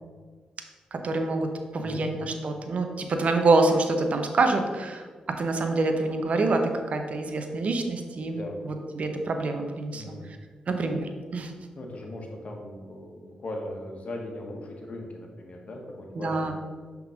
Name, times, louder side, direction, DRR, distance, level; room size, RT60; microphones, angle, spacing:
voice 1, 0.9-8.4 8.6-10.4 10.7-11.5 16.1-16.5, right 3 dB, 55° right, 5 dB, 0.8 m, -26 dB
voice 2, 1.8-2.1 8.3-8.6 9.9-10.2 11.8-16.5, left 1 dB, 55° left, 1 dB, 1.4 m, -38 dB
5.9 x 3.9 x 5.0 m, 1.5 s
supercardioid pair, 50°, 3 cm